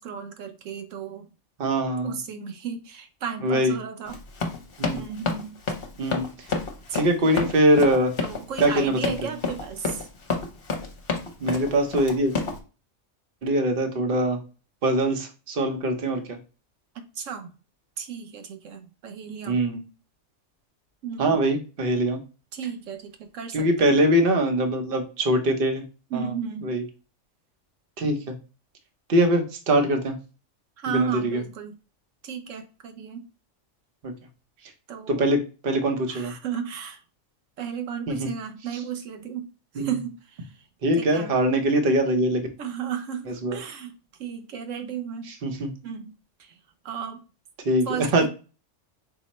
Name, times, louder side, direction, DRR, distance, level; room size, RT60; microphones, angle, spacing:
voice 1, 0.0-1.3 2.0-4.2 4.9-5.6 6.9-7.5 8.2-10.1 16.9-17.5 18.0-19.6 21.0-21.4 22.5-24.0 26.1-26.7 30.8-31.8 32.2-33.3 34.9-35.3 36.1-37.0 37.6-39.5 39.7-40.7 40.9-41.4 42.6-43.9 44.2-45.3 45.8-46.6 46.8-47.2 47.8-48.3, right 7 dB, 85° right, 1.1 m, -34 dB
voice 2, 1.6-2.2 3.4-3.7 4.8-5.0 6.0-6.5 6.9-8.1 8.6-9.3 11.4-12.3 13.4-14.4 14.8-16.4 19.5-19.8 21.2-22.2 23.5-25.8 26.1-26.3 26.6-26.8 28.0-28.3 29.1-30.2 30.9-31.4 34.0-34.1 35.1-36.3 38.1-38.3 39.8-39.9 40.8-42.5 43.3-43.6 45.4-45.7 47.6-48.3, right 1 dB, 50° right, 0.9 m, -23 dB
Run, 4.0-12.6, left 4 dB, 55° left, 1.0 m, -29 dB
5.8 x 2.1 x 4.1 m
omnidirectional pair, 1.3 m